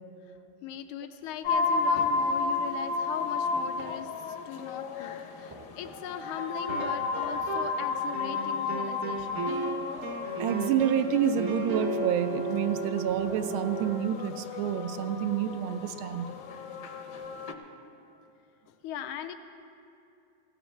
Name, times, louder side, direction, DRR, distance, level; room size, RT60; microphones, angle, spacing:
voice 1, 0.6-9.6 18.7-19.3, left 9 dB, 80° left, 9 dB, 1.5 m, -39 dB
sound 1, 1.4-17.5, left 4 dB, 65° left, 1.2 m, -33 dB
sound 2, 2.0-2.4 3.5-4.1 5.5-6.2 7.2-8.0, equal, 30° right, 0.4 m, -48 dB
sound 3, 6.7-7.8 8.1-14.0, right 4 dB, 60° right, 0.8 m, -35 dB
voice 2, 10.4-16.3, right 10 dB, 80° right, 10 dB, 1.4 m, -28 dB
16.5 x 14.5 x 3.2 m, 2.6 s
omnidirectional pair, 2.3 m